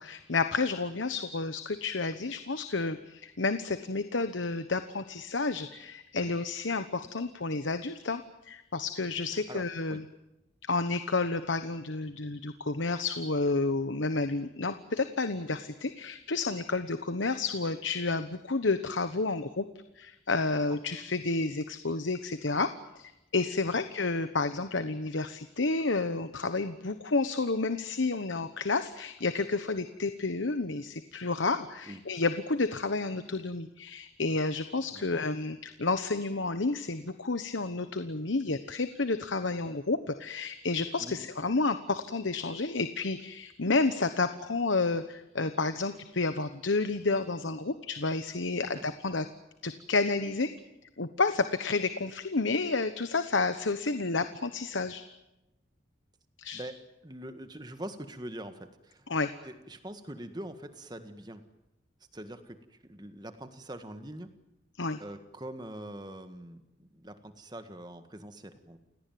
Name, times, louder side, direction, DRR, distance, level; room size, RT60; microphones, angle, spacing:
voice 1, 0.0-10.0 10.7-19.7 20.0-49.3 49.6-50.5 51.0-55.0 56.4-56.6 59.1-59.3 64.8-65.0, left 3 dB, 80° left, 10 dB, 1.1 m, -30 dB
voice 2, 9.3-9.6 9.9-10.0 23.7-23.8 31.9-32.0 34.9-35.3 41.0-41.2 48.6-48.8 56.5-56.8 57.0-59.1 59.4-61.4 62.1-64.3 65.0-68.8, right 1 dB, 20° right, 9 dB, 1.8 m, -43 dB
29.0 x 18.0 x 9.3 m, 0.94 s
head